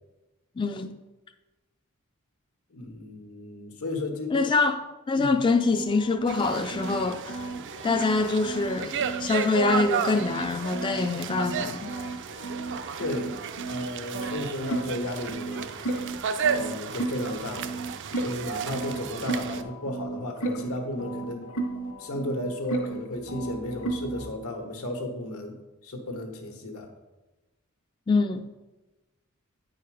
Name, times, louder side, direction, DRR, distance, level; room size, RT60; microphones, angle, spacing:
voice 1, 0.6-1.0 4.3-4.8 5.1-7.4 7.8-11.9 28.1-28.5, left 3 dB, 20° left, 0.3 m, -25 dB
voice 2, 2.7-4.5 5.2-5.4 13.0-13.3 13.7-15.7 16.5-17.7 18.2-21.6 22.0-25.6 25.8-26.9, left 1 dB, 85° left, 1.3 m, -34 dB
sound 1, 5.6-9.3 9.6-13.9 14.1-24.3, right 2 dB, 70° left, 1.2 m, -34 dB
sound 2, 6.3-19.6, right 6 dB, 55° right, 0.5 m, -33 dB
9.1 x 4.8 x 4.8 m
head